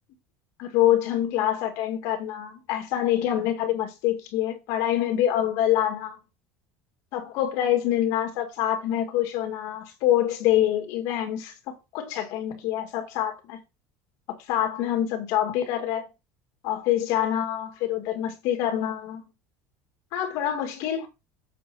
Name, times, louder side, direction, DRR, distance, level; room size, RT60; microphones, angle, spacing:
voice 1, 0.6-6.2 7.1-13.6 14.5-16.1 16.6-19.2 20.1-21.1, left 11 dB, 55° left, 2.1 m, -26 dB
7.5 x 5.7 x 4.2 m
cardioid pair, 175°, 7 cm